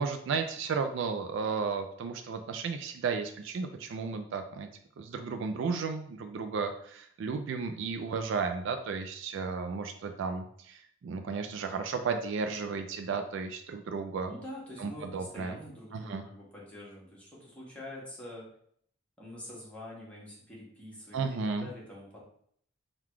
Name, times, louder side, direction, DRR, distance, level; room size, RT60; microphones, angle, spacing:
voice 1, 0.0-4.7 5.0-14.3 14.8-15.6 15.9-16.2 21.1-21.7, right 5 dB, 60° right, 7 dB, 0.3 m, -34 dB
voice 2, 14.2-18.4 19.2-21.2 21.5-22.2, left 1 dB, 5° left, -6 dB, 1.2 m, -45 dB
3.7 x 2.3 x 4.6 m, 0.64 s
head